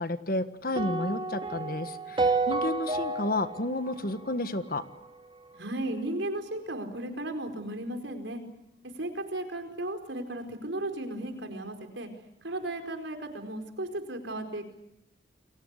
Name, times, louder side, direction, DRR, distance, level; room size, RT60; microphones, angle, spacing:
voice 1, 0.0-4.8, left 2 dB, 50° left, 10 dB, 1.5 m, -31 dB
sound 1, 0.8-5.1, right 3 dB, 25° right, 2.2 m, -31 dB
voice 2, 5.5-8.4 9.0-12.1 12.4-14.6, right 1 dB, 70° right, 6 dB, 4.6 m, -35 dB
29.5 x 23.0 x 8.3 m, 0.85 s
head